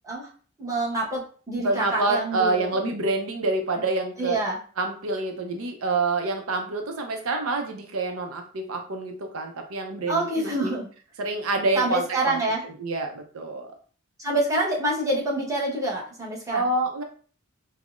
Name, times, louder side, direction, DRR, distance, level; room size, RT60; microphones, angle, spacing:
voice 1, 0.6-2.9 4.2-4.6 10.1-10.9 11.7-12.6 14.2-16.7, right 1 dB, 15° right, -5 dB, 1.0 m, -27 dB
voice 2, 1.6-4.4 4.8-10.7 11.2-13.7 16.5-17.0, right 3 dB, 90° right, 4 dB, 0.6 m, -27 dB
5.4 x 2.0 x 2.4 m, 0.42 s
head